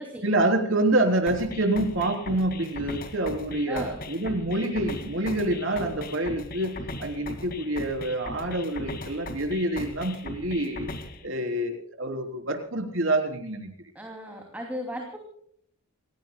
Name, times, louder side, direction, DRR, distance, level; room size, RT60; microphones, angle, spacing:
voice 1, 0.2-10.9 11.2-13.7, right 1 dB, 65° right, 4 dB, 3.6 m, -27 dB
sound 1, 1.3-11.3, left 2 dB, 45° left, 2.2 m, -39 dB
voice 2, 3.7-4.0 13.9-15.2, equal, 10° right, 1 dB, 2.7 m, -36 dB
29.5 x 17.0 x 2.3 m, 0.65 s
head